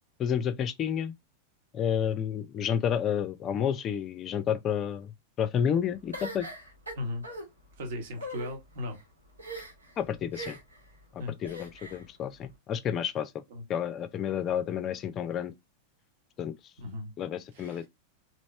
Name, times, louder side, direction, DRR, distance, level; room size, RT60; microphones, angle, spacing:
voice 1, 0.2-1.1 1.7-5.1 5.4-6.5 10.0-10.6 11.1-13.4 13.7-15.5 16.4-16.5 17.2-17.9, left 8 dB, 30° left, 0.5 m, -30 dB
sound 1, 6.1-7.4 8.1-8.5 9.4-9.9 10.3-10.8 11.4-12.0, equal, 80° right, 1.9 m, -40 dB
voice 2, 6.9-7.2 7.8-9.0 11.2-11.3 13.5-13.6 16.8-17.1 17.5-17.9, left 1 dB, 55° right, 1.3 m, -37 dB
4.1 x 3.0 x 3.2 m
figure-of-eight pair, 90°, 0 cm